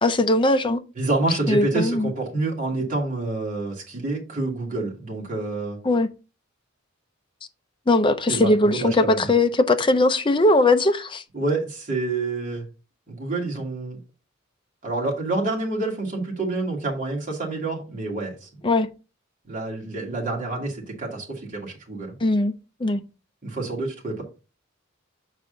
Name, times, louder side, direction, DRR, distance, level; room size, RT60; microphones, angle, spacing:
voice 1, 0.0-0.8 1.5-2.1 5.8-6.1 7.9-11.2 18.6-18.9 22.2-22.5 22.8-23.0, left 2 dB, 25° left, 0.6 m, -19 dB
voice 2, 1.0-5.8 8.3-9.2 11.3-12.7 13.1-14.0 14.8-18.5 19.4-22.1 23.4-24.2, right 2 dB, 40° right, 2.5 m, -28 dB
6.8 x 4.6 x 3.9 m
head